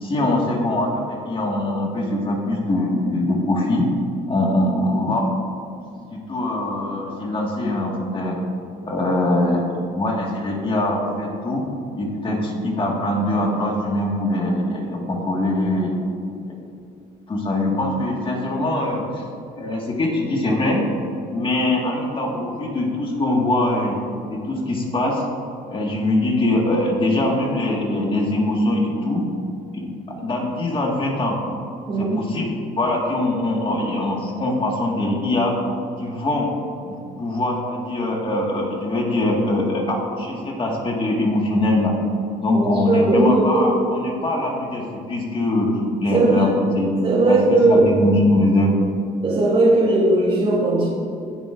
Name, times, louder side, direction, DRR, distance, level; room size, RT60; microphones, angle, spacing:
voice 1, 0.0-3.9 4.3-5.3 6.1-8.4 8.8-11.6 12.0-15.9 16.5-16.6 17.3-19.2 19.5-20.8 21.3-24.0 24.3-25.2 25.7-29.2 29.7-31.4 32.1-32.5 32.8-35.6 36.0-36.5 36.8-41.9 42.4-45.7 46.0-47.0 47.2-48.7, left 1 dB, 30° left, -1 dB, 1.8 m, -22 dB
voice 2, 31.9-32.2 42.5-43.8 46.1-46.5 47.0-47.9 49.2-50.9, right 2 dB, 35° right, -7 dB, 2.6 m, -18 dB
18.5 x 7.0 x 2.6 m, 2.5 s
cardioid pair, 110°, 17 cm